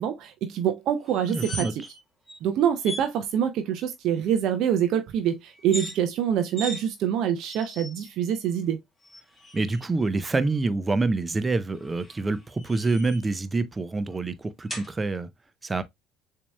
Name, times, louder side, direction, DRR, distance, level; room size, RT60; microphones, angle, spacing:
voice 1, 0.0-1.7 2.4-8.8, right 9 dB, 60° right, 0.6 m, -25 dB
sound 1, 1.1-2.0 2.3-2.4 2.8-3.1 5.6-6.0 6.6-6.8 7.5-8.1 9.0-9.9 11.7-13.4 14.7-14.9, equal, 10° left, 1.6 m, -38 dB
voice 2, 1.3-1.7 9.5-15.3 15.6-15.8, right 3 dB, 25° right, 0.7 m, -26 dB
7.0 x 2.9 x 2.2 m
hypercardioid pair, 60°, 0 cm